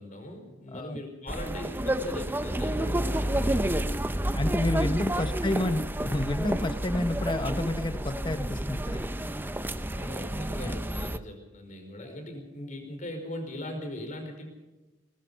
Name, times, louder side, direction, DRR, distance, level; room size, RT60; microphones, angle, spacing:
voice 1, 0.0-4.0 5.1-5.3 9.9-14.5, left 1 dB, 40° left, 5 dB, 5.0 m, -39 dB
sound 1, 1.3-11.2, right 1 dB, 10° right, 0.7 m, -30 dB
voice 2, 4.3-9.1 10.6-10.8 12.1-12.2, left 1 dB, 25° left, 10 dB, 0.9 m, -30 dB
22.0 x 21.5 x 5.6 m, 1.1 s
head